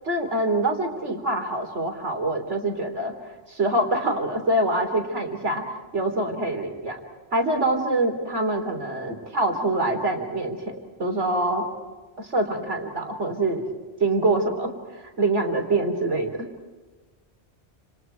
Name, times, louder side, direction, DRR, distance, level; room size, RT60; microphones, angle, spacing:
voice 1, 0.0-5.6 5.9-7.0 7.3-10.6 11.0-11.7 12.2-13.6 14.0-16.5, right 2 dB, 85° right, 4 dB, 4.1 m, -25 dB
29.5 x 28.0 x 4.7 m, 1.3 s
omnidirectional pair, 1.2 m